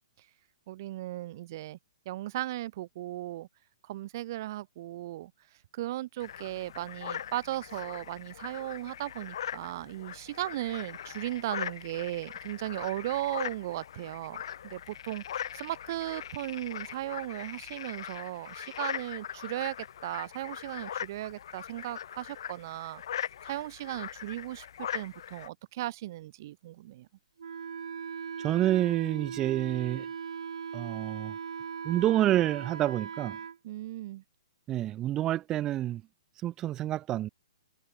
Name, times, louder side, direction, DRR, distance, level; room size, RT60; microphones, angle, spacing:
voice 1, 0.7-1.8 2.1-3.5 3.9-5.3 5.7-19.8 20.0-23.0 23.4-27.1 33.6-34.2, right 15 dB, 35° right, 3.5 m, -36 dB
sound 1, 6.2-25.5, left 9 dB, 55° left, 7.5 m, -41 dB
Wind instrument woodwind instrument, 27.4-33.6, right 7 dB, 75° right, 6.9 m, -39 dB
voice 2, 28.4-30.1 30.7-31.3 31.8-33.4 34.7-36.0 36.4-37.3, right 13 dB, 15° right, 1.0 m, -28 dB
hypercardioid pair, 165°, 3 cm